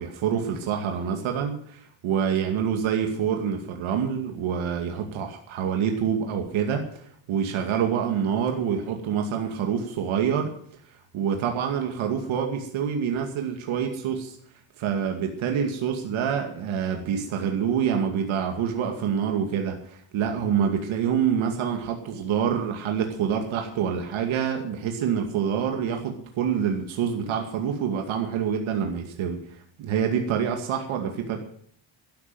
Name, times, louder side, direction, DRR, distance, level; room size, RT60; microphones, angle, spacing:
voice 1, 0.0-10.5 11.1-14.4 14.8-29.4 29.8-31.4, right 7 dB, 80° right, 3 dB, 2.4 m, -26 dB
12.5 x 12.0 x 7.8 m, 0.63 s
cardioid pair, 150°, 47 cm